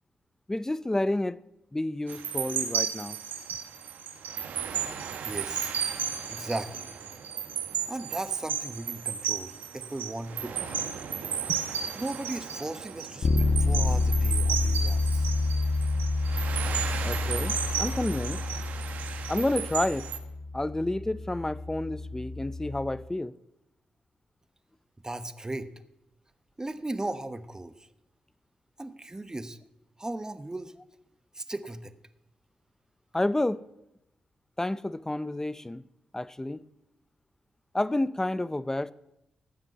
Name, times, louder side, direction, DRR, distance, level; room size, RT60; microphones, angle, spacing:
voice 1, 0.5-1.4 1.7-3.2 11.5-11.6 17.0-18.4 19.3-20.1 20.5-23.3 33.1-33.7 34.6-35.8 36.1-36.7 37.7-38.9, left 1 dB, 15° left, 0.6 m, -30 dB
sound 1, 2.1-20.2, right 8 dB, 80° right, 1.3 m, -34 dB
voice 2, 5.2-5.7 6.3-6.9 7.9-10.6 11.9-15.3 25.0-25.7 26.6-27.7 28.8-29.6 30.0-30.7 31.3-31.9, right 2 dB, 20° right, 1.1 m, -36 dB
Bass guitar, 13.2-23.0, left 3 dB, 65° left, 1.1 m, -29 dB
15.5 x 6.0 x 7.9 m
supercardioid pair, 45°, 3 cm